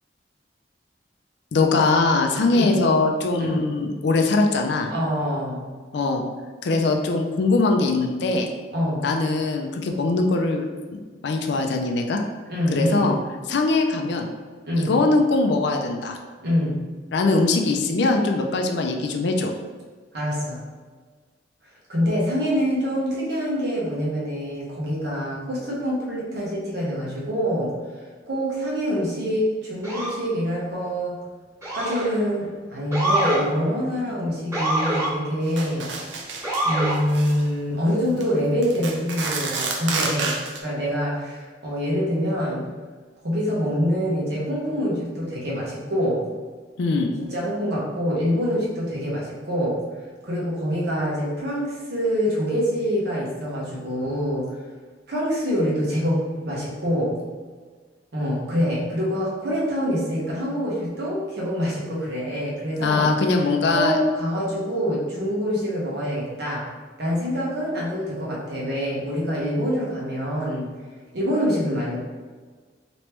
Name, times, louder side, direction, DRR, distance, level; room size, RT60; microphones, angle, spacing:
voice 1, 1.5-4.9 5.9-6.2 6.6-8.5 9.0-12.2 12.7-13.2 13.5-14.3 14.8-16.2 17.1-19.5 46.8-47.1 62.8-64.0, left 3 dB, 70° left, 3 dB, 0.4 m, -21 dB
voice 2, 4.9-5.6 8.7-9.0 12.5-13.1 14.6-14.9 16.4-16.8 20.1-20.6 21.9-27.7 28.3-31.2 31.7-35.9 36.6-42.6 43.2-46.2 47.2-49.8 50.2-54.4 55.1-57.2 58.1-63.4 63.7-66.7 67.0-70.7 71.1-72.0, equal, 65° right, -5 dB, 1.1 m, -25 dB
Motor vehicle (road) / Siren, 29.8-30.2 31.6-32.2 32.9-33.4 34.5-35.1 36.4-37.0, right 1 dB, 15° right, 1.0 m, -24 dB
sound 1, 35.6-36.7 36.9-37.4 38.0-38.2 38.6-40.6, right 4 dB, 90° right, 0.5 m, -29 dB
3.3 x 3.0 x 3.0 m, 1.5 s
head